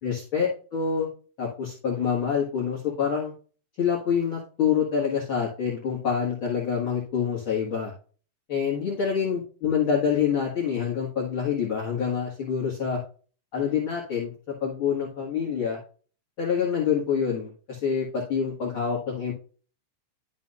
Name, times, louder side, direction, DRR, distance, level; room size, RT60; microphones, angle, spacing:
voice 1, 0.0-1.1 1.4-3.3 3.8-7.9 8.5-13.0 13.5-14.3 14.6-15.8 16.4-19.3, left 7 dB, 45° left, -4 dB, 2.5 m, -26 dB
12.0 x 5.6 x 2.5 m, 0.38 s
omnidirectional pair, 3.6 m